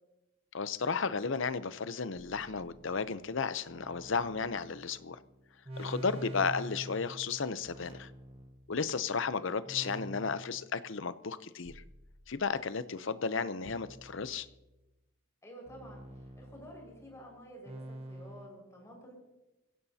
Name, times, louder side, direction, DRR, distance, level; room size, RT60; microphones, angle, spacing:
voice 1, 0.5-5.2 5.8-8.1 8.7-11.8 12.3-14.5, left 5 dB, 60° left, 13 dB, 0.7 m, -34 dB
sound 1, 2.2-9.2 9.7-10.8 11.6-12.8 13.7-14.9 15.7-18.5, right 1 dB, 30° right, 1.1 m, -48 dB
voice 2, 15.4-19.1, equal, 15° left, -1 dB, 5.3 m, -51 dB
25.5 x 16.5 x 2.8 m, 1.0 s
head